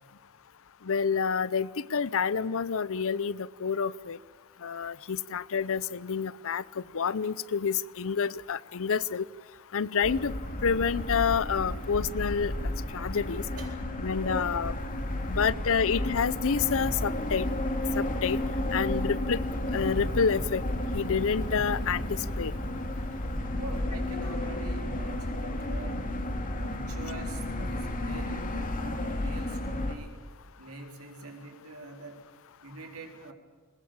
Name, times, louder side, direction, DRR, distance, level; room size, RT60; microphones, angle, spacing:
voice 1, 0.9-4.2 4.6-6.6 6.9-9.2 9.7-10.3 10.6-12.5 12.9-13.4 14.0-14.7 15.3-17.5 18.0-18.4 18.7-19.4 19.7-20.6 20.9-22.0 22.4-22.5, left 6 dB, 65° left, 20 dB, 0.6 m, -28 dB
sound 1, 10.0-30.0, left 1 dB, 40° left, 2.5 m, -32 dB
voice 2, 13.6-13.9 15.2-15.3 23.6-26.1 26.5-30.2 30.6-32.2 32.6-33.3, right 3 dB, 70° right, 4 dB, 4.0 m, -45 dB
21.5 x 20.5 x 8.8 m, 1.6 s
head